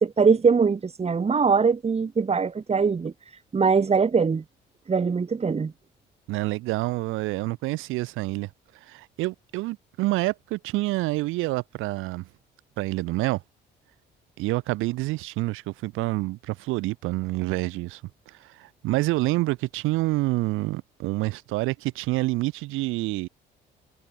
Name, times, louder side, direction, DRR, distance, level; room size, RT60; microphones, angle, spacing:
voice 1, 0.0-3.1 3.5-4.4 4.9-5.7, right 5 dB, 30° right, 1.3 m, -22 dB
voice 2, 6.3-8.5 8.8-12.3 12.8-13.4 14.4-18.0 18.3-23.3, right 20 dB, 85° right, 3.5 m, -27 dB
supercardioid pair, 65°, 20 cm